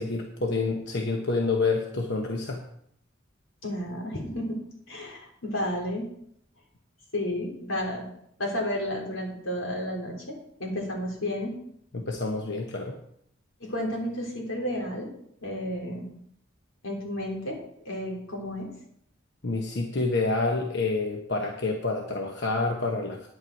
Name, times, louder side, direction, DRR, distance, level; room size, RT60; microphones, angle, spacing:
voice 1, 0.0-2.6 11.9-13.0 19.4-23.3, left 3 dB, 60° left, 2 dB, 1.0 m, -28 dB
voice 2, 3.6-4.6 4.9-6.1 7.1-8.1 8.4-11.5 12.1-12.2 13.6-15.1 15.4-16.1 16.8-17.6 17.9-18.7, left 1 dB, 90° left, -1 dB, 3.4 m, -32 dB
9.8 x 8.8 x 4.6 m, 0.70 s
head